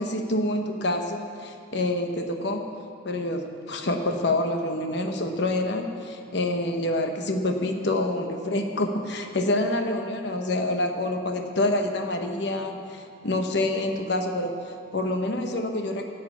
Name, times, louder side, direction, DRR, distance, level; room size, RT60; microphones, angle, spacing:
voice 1, 0.0-2.6 3.0-16.0, left 1 dB, 60° left, 4 dB, 0.9 m, -27 dB
11.0 x 7.6 x 8.2 m, 2.3 s
head